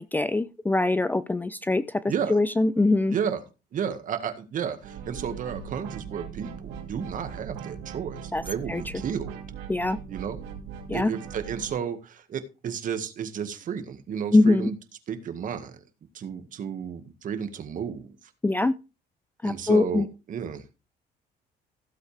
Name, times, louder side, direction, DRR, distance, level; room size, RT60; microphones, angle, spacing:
voice 1, 0.0-1.8 2.3-3.2 8.3-8.4 8.7-8.8 9.7-10.0 10.9-11.1 14.3-14.7 18.4-18.7 19.4-20.1, left 2 dB, 10° left, 0.4 m, -22 dB
voice 2, 2.1-2.4 3.1-3.4 3.7-9.4 10.1-10.4 10.9-14.8 15.1-15.8 16.1-18.1 19.4-20.6, right 7 dB, 50° right, 1.9 m, -32 dB
sound 1, 4.8-11.7, right 7 dB, 85° right, 2.7 m, -39 dB
15.5 x 7.8 x 3.4 m
cardioid pair, 110°, 17 cm